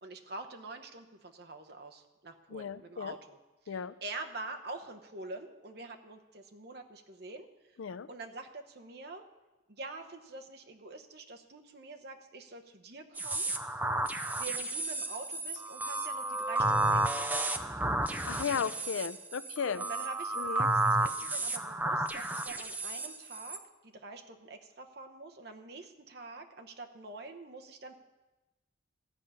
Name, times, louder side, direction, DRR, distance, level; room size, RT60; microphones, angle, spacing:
voice 1, 0.0-3.4 3.6-7.8 8.1-9.2 9.7-13.5 14.4-17.5 19.6-28.0, right 3 dB, 55° right, 4 dB, 1.0 m, -46 dB
voice 2, 2.5-3.1 3.7-3.9 7.8-8.1 18.3-19.8 20.4-20.7, left 6 dB, 85° left, 15 dB, 0.4 m, -35 dB
sound 1, 13.2-23.6, right 2 dB, 10° right, 0.4 m, -32 dB
13.5 x 5.6 x 8.9 m, 1.1 s
head